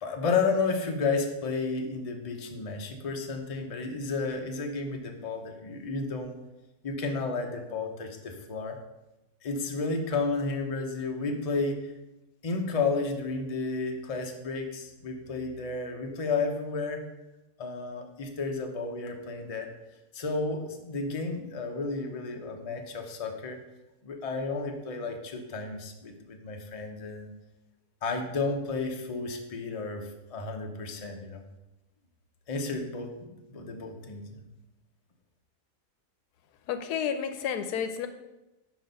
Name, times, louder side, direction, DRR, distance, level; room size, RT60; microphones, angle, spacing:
voice 1, 0.0-6.4 6.8-8.8 9.4-11.9 12.4-17.0 17.6-19.7 20.1-23.6 24.0-27.3 28.0-31.4 32.5-34.4, left 4 dB, 30° left, 2 dB, 0.7 m, -32 dB
voice 2, 36.7-38.1, left 8 dB, 85° left, 8 dB, 1.1 m, -31 dB
6.1 x 5.2 x 5.3 m, 0.98 s
omnidirectional pair, 1.7 m